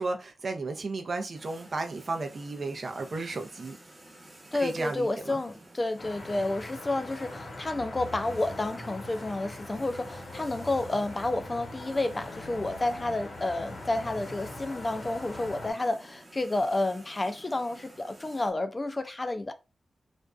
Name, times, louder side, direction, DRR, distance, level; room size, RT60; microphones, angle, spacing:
voice 1, 0.0-3.7 4.6-5.4, right 3 dB, 60° right, 0.5 m, -34 dB
sound 1, 1.3-18.5, right 1 dB, 35° right, 0.8 m, -52 dB
voice 2, 4.5-19.5, left 2 dB, 30° left, 0.3 m, -30 dB
sound 2, 6.0-15.7, left 2 dB, 80° left, 0.9 m, -42 dB
2.5 x 2.2 x 2.3 m
cardioid pair, 70°, 0 cm